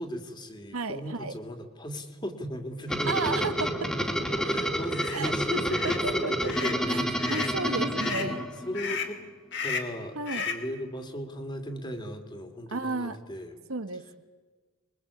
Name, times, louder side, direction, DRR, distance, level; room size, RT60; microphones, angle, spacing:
voice 1, 0.0-3.5 4.4-7.8 8.0-8.4 8.6-9.2 9.6-13.6, equal, 20° left, 6 dB, 2.9 m, -36 dB
voice 2, 0.7-1.3 3.1-4.5 5.1-8.4 10.1-10.5 12.7-13.2 13.7-14.1, right 3 dB, 90° right, 10 dB, 1.6 m, -33 dB
sound 1, 2.9-8.9, equal, 5° left, 2.5 m, -29 dB
sound 2, 4.9-5.2 5.7-6.0 6.4-6.8 7.2-7.6 8.0-8.3 8.7-9.2 9.5-10.0 10.3-10.7, left 5 dB, 55° left, 3.0 m, -34 dB
27.0 x 23.0 x 8.6 m, 1.4 s
head